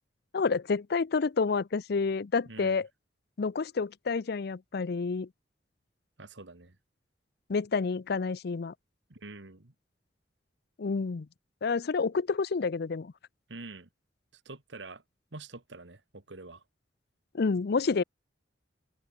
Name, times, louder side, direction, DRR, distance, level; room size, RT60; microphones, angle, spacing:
voice 1, 0.3-2.9 3.4-5.3 7.5-8.7 10.8-11.3 11.6-13.1 17.3-18.0, left 4 dB, 60° left, 0.5 m, -29 dB
voice 2, 2.5-2.8 6.2-6.8 9.1-9.7 13.5-13.9 14.5-15.0 15.3-16.6, right 3 dB, 75° right, 1.9 m, -46 dB
open air
head